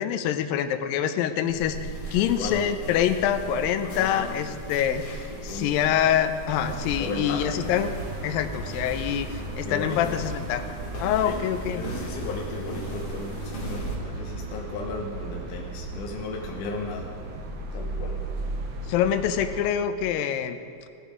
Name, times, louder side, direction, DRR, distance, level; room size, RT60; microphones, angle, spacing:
voice 1, 0.0-7.9 8.2-10.7 11.0-11.8 18.9-20.6, left 9 dB, 85° left, 10 dB, 2.3 m, -25 dB
sound 1, 1.5-14.0, right 1 dB, 55° left, 3.7 m, -37 dB
voice 2, 2.2-2.6 3.8-4.4 5.3-5.8 7.0-7.6 9.7-10.2 11.2-11.4 11.7-17.1 17.7-18.2, left 3 dB, 70° left, -1 dB, 2.4 m, -35 dB
sound 2, 6.5-19.6, right 3 dB, 85° right, 1.1 m, -37 dB
18.0 x 8.1 x 5.0 m, 2.5 s
omnidirectional pair, 4.0 m